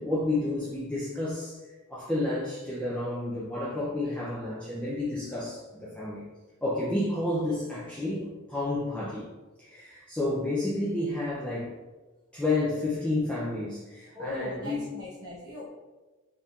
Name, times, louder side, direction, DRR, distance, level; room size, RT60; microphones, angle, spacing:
voice 1, 0.0-1.6 1.9-6.2 6.6-9.3 9.6-11.7 12.3-14.8, left 2 dB, 5° left, -8 dB, 0.4 m, -30 dB
voice 2, 14.1-15.7, left 2 dB, 20° right, -8 dB, 1.1 m, -38 dB
3.5 x 2.7 x 2.3 m, 1.2 s
head